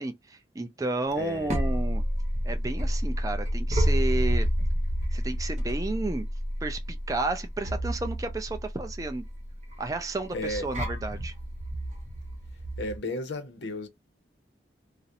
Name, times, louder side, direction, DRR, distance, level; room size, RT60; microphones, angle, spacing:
voice 1, 0.0-2.0 2.4-4.5 5.1-6.3 6.6-9.3 9.8-11.3, right 2 dB, 20° right, 0.3 m, -32 dB
voice 2, 1.1-1.6 10.3-10.6 12.8-13.9, left 1 dB, 80° left, 0.6 m, -33 dB
sound 1, 1.1-13.0, equal, 40° right, 0.8 m, -29 dB
2.4 x 2.0 x 2.8 m
head